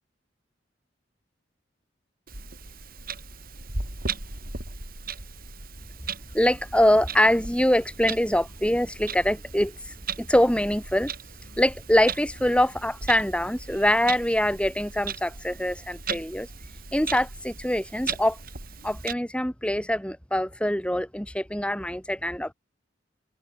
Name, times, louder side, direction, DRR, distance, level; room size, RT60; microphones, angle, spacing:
Clock, 2.3-19.1, right 5 dB, 50° right, 6.0 m, -37 dB
voice 1, 6.3-9.7 10.2-11.1 11.6-16.5 16.9-18.4 18.8-22.5, left 1 dB, 5° left, 7.6 m, -24 dB
head